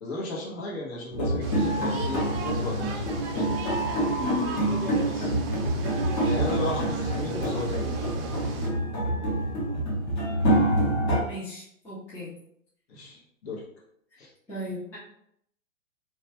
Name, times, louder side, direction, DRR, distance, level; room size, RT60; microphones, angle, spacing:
voice 1, 0.0-3.0 5.0-5.3 6.2-8.0 12.9-13.6 14.2-14.3, left 2 dB, 50° left, -4 dB, 1.2 m, -35 dB
sound 1, 1.1-11.2, right 1 dB, 25° left, 0.9 m, -26 dB
sound 2, 1.4-8.7, right 4 dB, 45° right, 0.6 m, -38 dB
voice 2, 4.2-4.6 11.2-12.3 14.5-15.0, left 3 dB, 5° left, -9 dB, 0.5 m, -35 dB
2.9 x 2.3 x 2.8 m, 0.70 s
hypercardioid pair, 130°, 42 cm